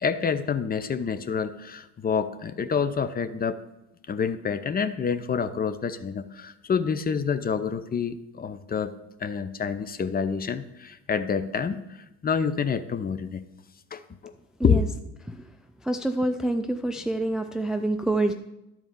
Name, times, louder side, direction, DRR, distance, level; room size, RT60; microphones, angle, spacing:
voice 1, 0.0-3.6 4.1-8.9 9.2-11.8 12.2-13.4 13.9-14.3 14.6-14.9, left 6 dB, 25° left, 12 dB, 0.7 m, -27 dB
voice 2, 15.9-18.3, right 1 dB, ahead, 7 dB, 0.4 m, -26 dB
10.5 x 4.5 x 7.0 m, 0.91 s
supercardioid pair, 80°, 33 cm